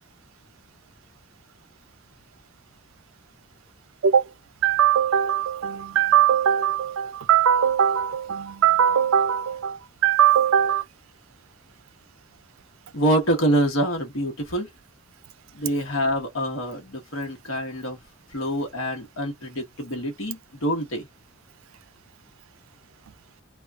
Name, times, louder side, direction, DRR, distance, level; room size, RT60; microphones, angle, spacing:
voice 1, 4.6-10.8, right 9 dB, 80° right, 0.4 m, -20 dB
voice 2, 12.9-14.7 15.5-18.0 18.3-21.0, right 1 dB, 80° left, 1.2 m, -26 dB
3.2 x 2.3 x 2.3 m
head